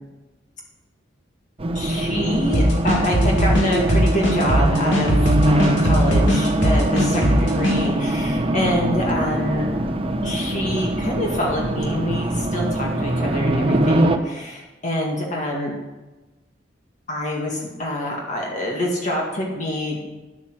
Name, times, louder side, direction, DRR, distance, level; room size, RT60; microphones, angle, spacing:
Race car auto racing, 1.6-14.2, right 1 dB, 30° right, 0.8 m, -22 dB
voice 1, 1.7-9.7 10.2-15.7 17.1-20.1, left 1 dB, 40° left, -1 dB, 1.9 m, -26 dB
sound 1, 2.5-7.8, equal, 70° left, 2.9 m, -19 dB
10.5 x 8.7 x 6.1 m, 1.1 s
head